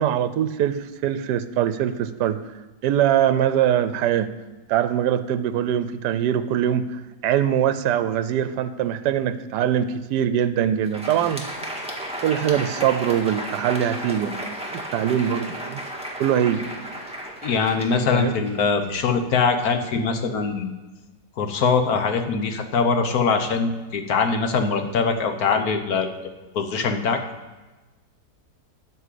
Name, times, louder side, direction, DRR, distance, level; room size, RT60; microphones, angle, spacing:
voice 1, 0.0-2.4 2.8-4.3 4.7-11.5 12.2-14.5 14.9-15.8 16.2-16.6 18.1-18.4, right 10 dB, 80° right, 13 dB, 1.2 m, -22 dB
Crowd, 10.7-19.2, right 1 dB, 5° right, 1.4 m, -34 dB
voice 2, 17.4-20.7 21.4-26.1 26.5-27.2, left 5 dB, 60° left, 6 dB, 1.4 m, -22 dB
12.5 x 5.1 x 8.3 m, 1.2 s
omnidirectional pair, 1.8 m